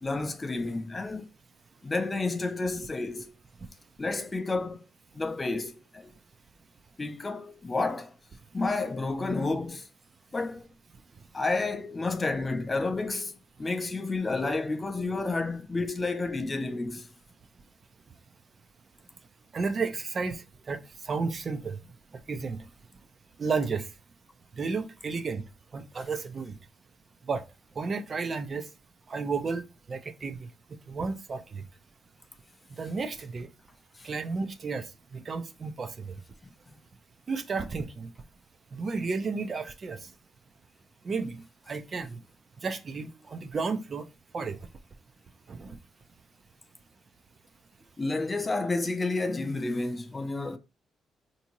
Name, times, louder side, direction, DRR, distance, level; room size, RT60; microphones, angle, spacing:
voice 1, 0.0-1.3 1.8-3.3 4.0-4.9 5.1-6.1 7.0-8.1 8.5-9.9 10.3-10.7 11.3-17.1 33.9-34.1 36.4-36.8 48.0-50.6, left 3 dB, 25° left, 0.5 m, -30 dB
voice 2, 19.5-20.8 21.0-21.8 22.3-22.6 23.4-23.9 24.6-25.4 25.7-26.5 27.3-27.4 27.8-28.7 29.1-29.6 29.9-30.5 30.9-31.6 32.8-33.5 34.0-34.9 35.1-36.1 37.3-38.1 38.7-40.0 41.0-41.4 41.7-42.2 42.6-44.0 44.3-44.6 45.5-45.7, right 4 dB, 40° right, 0.4 m, -32 dB
3.5 x 2.7 x 2.9 m
cardioid pair, 90°, 0 cm